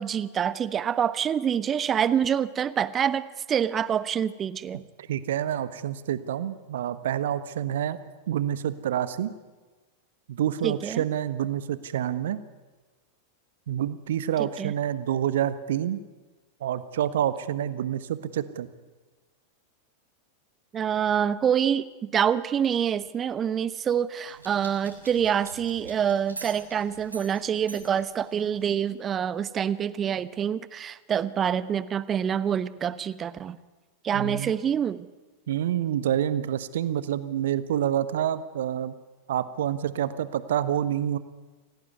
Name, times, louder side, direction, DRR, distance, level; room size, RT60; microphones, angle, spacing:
voice 1, 0.0-3.2 3.5-4.8 10.6-11.0 14.4-14.7 20.7-33.6 34.0-35.1, right 8 dB, 25° right, 16 dB, 1.0 m, -26 dB
voice 2, 5.1-8.0 8.3-9.3 10.3-12.4 13.7-16.0 16.6-18.7 34.1-34.5 35.5-38.9 39.3-41.2, right 10 dB, 60° right, 14 dB, 1.3 m, -27 dB
sound 1, 24.2-28.8, right 3 dB, 80° right, 6.4 m, -45 dB
26.5 x 18.0 x 9.5 m, 1.2 s
figure-of-eight pair, 90°, 0 cm